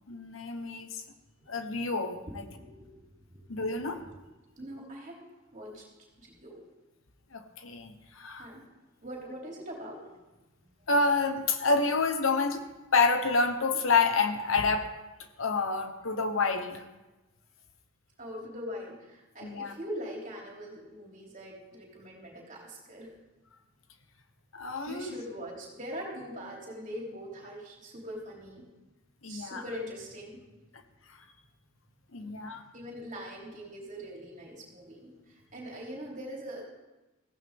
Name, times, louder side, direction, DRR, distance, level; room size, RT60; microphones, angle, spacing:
voice 1, 0.1-1.0 1.5-2.2 3.5-4.0 7.3-8.5 10.9-12.6 12.9-14.9 15.4-16.8 19.4-19.7 24.5-25.2 29.2-29.6 32.1-32.6, left 4 dB, 80° left, 8 dB, 1.2 m, -28 dB
voice 2, 2.4-4.2 4.6-5.2 5.5-5.8 6.2-6.6 8.4-8.7 9.0-10.2 18.2-23.1 24.8-28.7 29.3-30.5 32.2-36.6, equal, 40° right, -2 dB, 3.4 m, -42 dB
15.5 x 15.0 x 3.7 m, 1.1 s
head